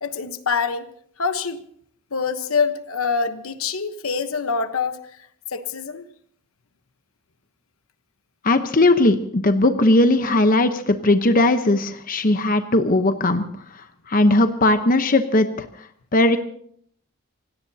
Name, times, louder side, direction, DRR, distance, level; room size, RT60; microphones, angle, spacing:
voice 1, 0.0-0.9 1.2-1.6 2.1-5.0 5.5-6.0, left 5 dB, 75° left, 9 dB, 1.1 m, -25 dB
voice 2, 8.4-13.4 14.1-15.7 16.1-16.4, left 2 dB, 40° left, 8 dB, 0.9 m, -18 dB
27.0 x 17.5 x 2.8 m, 0.63 s
head